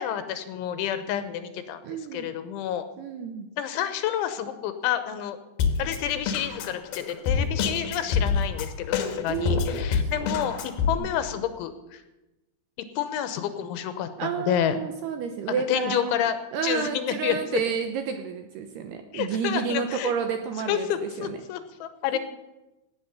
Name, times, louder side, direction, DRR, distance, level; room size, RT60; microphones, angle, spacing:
voice 1, 0.0-2.9 3.6-5.4 5.8-12.0 13.0-14.8 15.7-16.4 16.6-17.6 19.1-20.1 20.7-22.2, left 10 dB, 85° left, 10 dB, 3.3 m, -29 dB
voice 2, 1.8-2.3 3.0-3.5 9.3-10.5 11.0-11.1 14.2-21.4, right 7 dB, 80° right, 7 dB, 2.5 m, -31 dB
Drum kit, 5.6-10.9, left 6 dB, 65° left, 2.5 m, -26 dB
18.0 x 8.5 x 7.0 m, 1.0 s
omnidirectional pair, 5.6 m